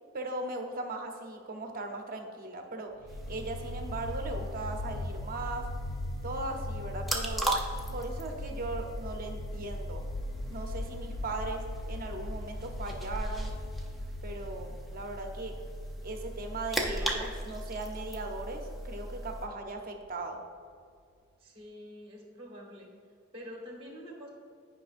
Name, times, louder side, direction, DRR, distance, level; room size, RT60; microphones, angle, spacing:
voice 1, 0.1-2.9 3.3-5.7 6.2-7.5 7.9-10.0 10.5-11.6 11.9-13.5 14.2-15.5 16.0-20.4, right 2 dB, 45° right, 4 dB, 0.7 m, -38 dB
sound 1, 3.0-20.0, left 2 dB, 65° left, 0.5 m, -41 dB
sound 2, 3.1-19.5, right 1 dB, ahead, 0.6 m, -38 dB
voice 2, 21.4-22.9 23.3-24.3, equal, 30° right, 0 dB, 1.2 m, -46 dB
10.5 x 5.0 x 2.5 m, 2.3 s
head